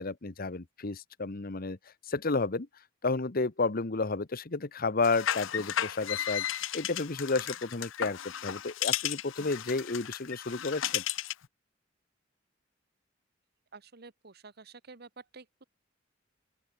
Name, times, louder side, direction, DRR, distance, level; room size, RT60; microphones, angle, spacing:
voice 1, 0.0-1.8 2.1-2.7 3.0-11.0, left 3 dB, 50° left, 1.1 m, -31 dB
sound 1, 5.0-11.5, left 11 dB, 80° left, 0.7 m, -34 dB
voice 2, 13.7-15.6, right 4 dB, 55° right, 1.4 m, -50 dB
open air
head